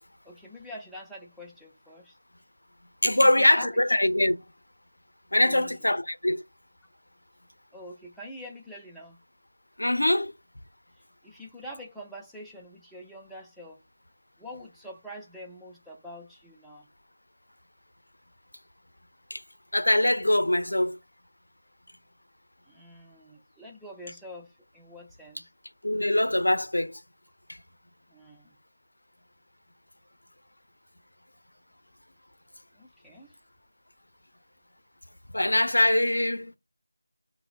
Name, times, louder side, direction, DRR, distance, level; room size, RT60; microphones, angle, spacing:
voice 1, 0.2-2.2 3.0-3.7 5.4-5.7 7.7-9.2 11.2-13.8 14.4-16.9 22.7-25.5 28.1-28.5 32.7-33.3, equal, ahead, 0.3 m, -45 dB
voice 2, 3.0-4.4 5.3-6.4 9.8-10.3 19.3-19.4 19.7-21.0 25.8-27.0 27.5-27.6 35.3-36.5, left 1 dB, 80° left, 0.5 m, -23 dB
3.6 x 2.1 x 2.2 m
figure-of-eight pair, 170°, 0 cm